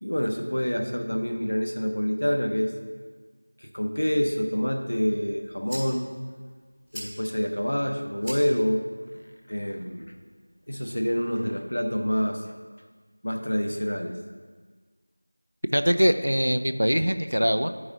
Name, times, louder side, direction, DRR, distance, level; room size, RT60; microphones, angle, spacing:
voice 1, 0.0-2.7 3.6-6.1 6.9-8.8 9.5-10.1 10.7-12.5 13.2-14.1, equal, 50° left, 4 dB, 0.7 m, -27 dB
sound 1, 5.0-11.0, equal, 5° left, 0.7 m, -46 dB
voice 2, 15.7-17.7, equal, 90° right, 10 dB, 0.4 m, -22 dB
11.0 x 4.8 x 2.7 m, 1.5 s
figure-of-eight pair, 180°, 0 cm